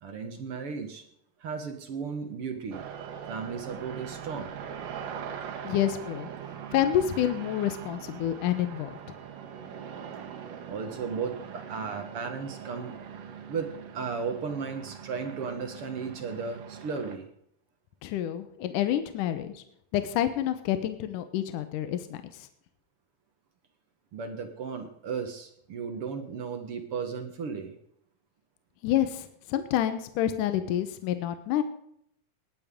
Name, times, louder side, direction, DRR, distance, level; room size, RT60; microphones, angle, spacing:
voice 1, 0.0-1.0 1.4-2.8 3.3-4.6 10.7-12.9 13.5-13.7 13.9-17.3 24.1-27.7, right 5 dB, 55° right, 5 dB, 1.8 m, -35 dB
sound 1, 2.7-17.2, right 8 dB, 70° right, 3.1 m, -42 dB
voice 2, 5.6-6.3 6.7-8.9 18.0-19.6 19.9-22.2 28.8-31.6, left 11 dB, 75° left, 10 dB, 2.4 m, -28 dB
19.0 x 10.5 x 3.7 m, 0.71 s
omnidirectional pair, 4.0 m